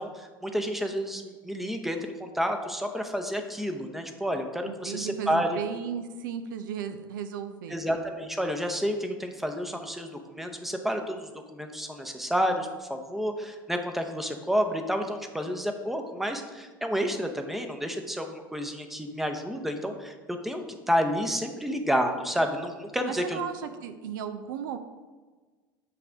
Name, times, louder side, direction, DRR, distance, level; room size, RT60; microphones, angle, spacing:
voice 1, 0.0-5.6 7.7-23.4, equal, ahead, 5 dB, 0.7 m, -30 dB
voice 2, 4.6-7.8 23.0-24.8, right 8 dB, 60° right, 9 dB, 0.4 m, -35 dB
8.5 x 3.3 x 4.9 m, 1.4 s
figure-of-eight pair, 75°, 12 cm